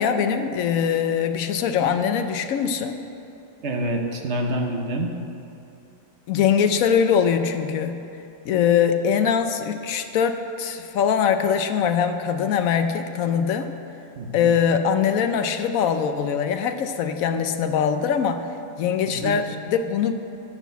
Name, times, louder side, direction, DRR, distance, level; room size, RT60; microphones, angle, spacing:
voice 1, 0.0-3.0 6.3-8.0 8.4-13.7 14.3-18.5 18.8-20.1, left 7 dB, 65° left, 8 dB, 1.0 m, -22 dB
voice 2, 3.6-5.1 14.2-14.5 19.0-19.4, right 1 dB, 50° right, 2 dB, 1.0 m, -27 dB
13.0 x 4.4 x 8.1 m, 2.7 s
omnidirectional pair, 1.7 m